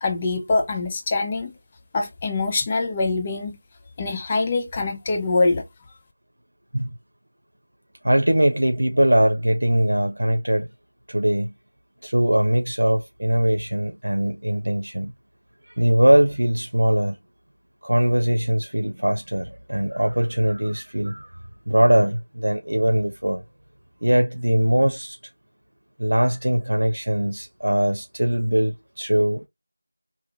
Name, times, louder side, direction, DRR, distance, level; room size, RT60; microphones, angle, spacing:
voice 1, 0.0-1.5 1.9-3.6 4.0-5.6, left 3 dB, 10° left, 0.5 m, -24 dB
voice 2, 8.0-10.7 11.1-11.5 12.0-15.1 15.8-17.2 17.8-21.3 21.7-23.4 24.0-25.2 26.0-29.5, right 1 dB, 70° right, 0.8 m, -21 dB
5.0 x 2.9 x 2.7 m
figure-of-eight pair, 175°, 0 cm